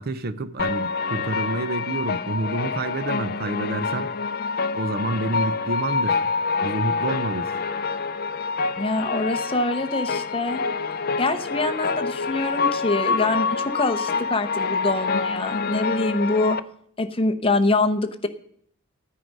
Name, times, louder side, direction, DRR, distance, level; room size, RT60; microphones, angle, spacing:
voice 1, 0.0-4.1 4.7-6.2 6.6-7.5, right 2 dB, 45° right, 0.6 m, -28 dB
sound 1, 0.6-16.6, left 4 dB, 45° left, 0.5 m, -26 dB
voice 2, 8.8-10.6 11.2-16.6 17.0-18.3, left 2 dB, 25° left, 0.8 m, -24 dB
14.5 x 9.5 x 5.3 m
head